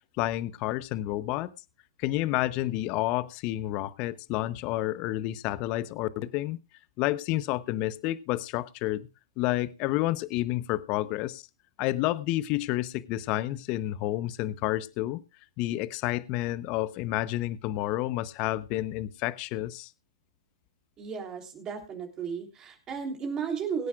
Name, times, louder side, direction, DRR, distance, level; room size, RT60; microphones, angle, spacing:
voice 1, 0.2-1.5 2.0-6.6 7.0-9.1 9.4-11.4 11.8-15.2 15.6-19.9, left 16 dB, 40° left, 16 dB, 0.8 m, -30 dB
voice 2, 21.0-23.9, right 6 dB, 30° right, 3 dB, 3.4 m, -34 dB
23.0 x 9.4 x 2.4 m, 0.27 s
hypercardioid pair, 115°, 2 cm